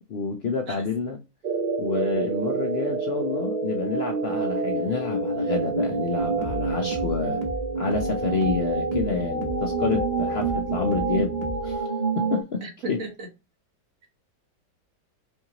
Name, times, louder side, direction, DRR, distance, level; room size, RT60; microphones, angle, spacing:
voice 1, 0.1-1.2 1.8-7.4 7.8-11.3 11.6-11.9 12.2-12.6 12.9-13.0, left 5 dB, 75° left, 0.5 m, -28 dB
sound 1, 1.4-12.4, right 4 dB, 80° right, 0.4 m, -27 dB
sound 2, 6.2-11.8, equal, 25° right, 1.1 m, -36 dB
voice 2, 12.6-13.3, right 3 dB, 50° right, 1.6 m, -35 dB
5.2 x 2.7 x 2.8 m
omnidirectional pair, 1.9 m